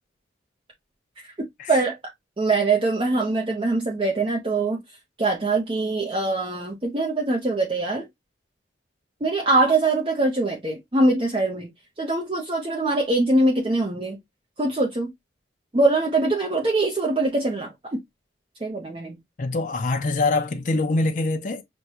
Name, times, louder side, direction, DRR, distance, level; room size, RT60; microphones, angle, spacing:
voice 1, 2.4-4.8 5.2-8.1 9.2-11.7 12.0-14.2 14.6-15.1 15.7-17.7 18.6-19.2, right 2 dB, 30° right, 0.6 m, -23 dB
voice 2, 19.4-21.6, left 2 dB, 45° left, 0.5 m, -24 dB
6.0 x 2.2 x 2.7 m
head